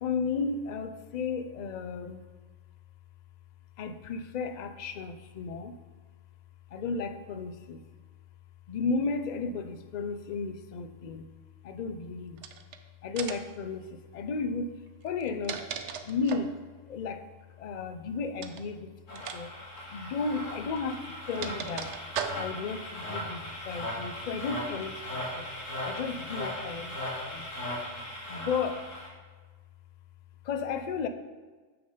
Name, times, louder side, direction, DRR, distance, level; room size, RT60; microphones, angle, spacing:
voice 1, 0.0-2.2 3.8-5.7 6.7-7.8 8.7-11.2 11.6-12.4 13.0-13.8 14.1-14.7 15.0-15.6 16.1-16.5 16.9-17.2 17.6-19.5 19.9-21.9 22.3-24.9 25.3-25.5 25.8-27.0 27.3-27.5 28.3-28.9 30.5-31.1, left 4 dB, 55° left, 9 dB, 0.5 m, -33 dB
sound 1, 12.4-12.8 13.2-13.6 15.1-16.6 18.4-18.7 19.2-19.4 19.7-19.8 20.8-22.7, right 7 dB, 65° right, 0.9 m, -38 dB
sound 2, 19.1-29.1, left 1 dB, 75° left, 2.3 m, -38 dB
7.1 x 6.4 x 5.5 m, 1.4 s
omnidirectional pair, 1.3 m